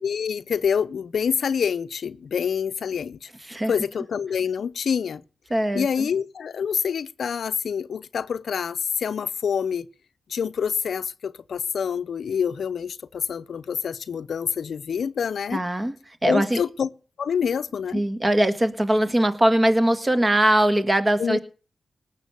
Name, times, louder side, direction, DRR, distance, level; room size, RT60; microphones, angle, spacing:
voice 1, 0.0-3.3 3.7-5.2 5.7-9.9 10.3-15.6 16.3-16.9 17.2-18.0 21.2-21.4, left 7 dB, 75° left, 0.6 m, -26 dB
voice 2, 5.5-6.1 15.5-15.9 16.2-16.6 17.9-21.4, right 1 dB, 25° right, 1.7 m, -21 dB
19.0 x 7.2 x 6.8 m
cardioid pair, 75°, 0 cm